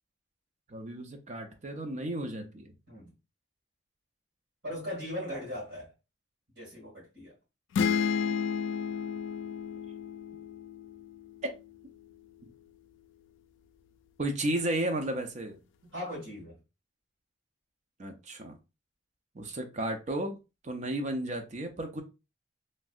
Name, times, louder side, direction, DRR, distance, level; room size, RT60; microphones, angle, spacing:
voice 1, 0.7-2.7 11.4-11.5 14.2-15.6 18.0-18.5 19.4-20.4 20.6-22.0, right 1 dB, 40° right, 0.5 m, -33 dB
voice 2, 4.6-5.9 6.6-7.3 15.9-16.6, left 1 dB, 70° right, 1.8 m, -39 dB
sound 1, 7.7-11.5, left 6 dB, 90° left, 0.3 m, -32 dB
3.2 x 2.7 x 2.4 m
head